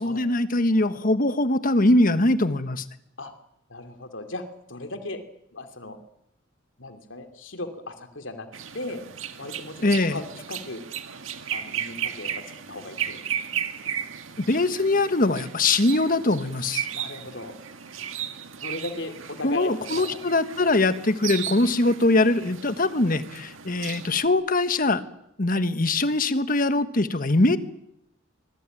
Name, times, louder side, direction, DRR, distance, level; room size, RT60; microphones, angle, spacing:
voice 1, 0.0-2.8 9.8-10.2 14.4-16.9 19.4-25.0 25.4-27.6, left 2 dB, 45° left, 11 dB, 1.4 m, -22 dB
voice 2, 3.7-5.2 5.5-6.0 6.8-8.5 8.7-9.0 9.4-9.8 10.1-10.8 11.5-12.3 12.7-13.2 13.5-13.6 16.9-17.5 18.6-20.2, left 2 dB, 70° left, 7 dB, 2.7 m, -36 dB
sound 1, 8.5-24.3, right 9 dB, 80° right, 1.9 m, -35 dB
25.0 x 20.5 x 9.1 m, 0.79 s
head